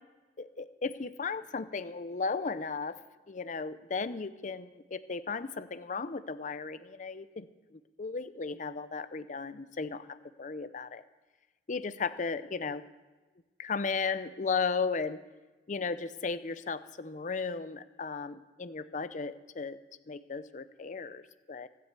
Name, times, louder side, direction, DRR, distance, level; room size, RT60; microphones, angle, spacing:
voice 1, 0.4-3.0 3.3-7.5 7.7-11.0 11.7-12.8 13.6-15.2 15.7-19.8 20.1-21.7, left 4 dB, 45° left, 13 dB, 0.5 m, -35 dB
13.0 x 7.6 x 8.1 m, 1.2 s
head